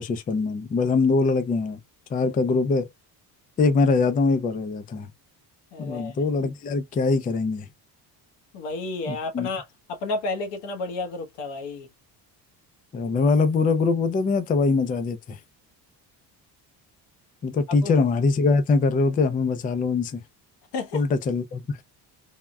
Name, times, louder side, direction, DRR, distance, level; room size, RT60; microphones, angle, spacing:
voice 1, 0.0-1.8 2.1-2.9 3.6-5.1 5.8-7.7 9.1-9.5 12.9-15.4 17.4-20.2 20.9-21.8, left 4 dB, 20° left, 0.4 m, -23 dB
voice 2, 5.7-6.1 8.5-11.9 17.7-17.9 20.7-21.0, left 3 dB, 80° left, 1.1 m, -31 dB
3.5 x 2.1 x 2.2 m
cardioid pair, 125°, 41 cm